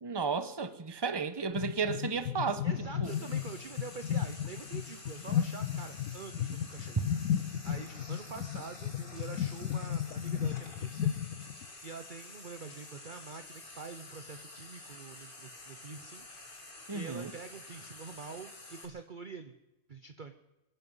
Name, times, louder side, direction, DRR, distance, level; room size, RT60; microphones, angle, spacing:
voice 1, 0.0-2.6 3.0-3.3 16.9-17.3, right 5 dB, 20° right, 11 dB, 0.9 m, -33 dB
sound 1, 1.5-11.7, left 9 dB, 85° left, 1.2 m, -34 dB
voice 2, 2.6-7.0 7.6-11.2 11.5-16.3 16.6-19.5 19.9-20.3, right 4 dB, 45° right, 8 dB, 0.8 m, -46 dB
Frying (food), 3.0-18.9, left 2 dB, 35° left, 2.2 m, -50 dB
24.0 x 10.5 x 5.6 m, 1.0 s
omnidirectional pair, 1.5 m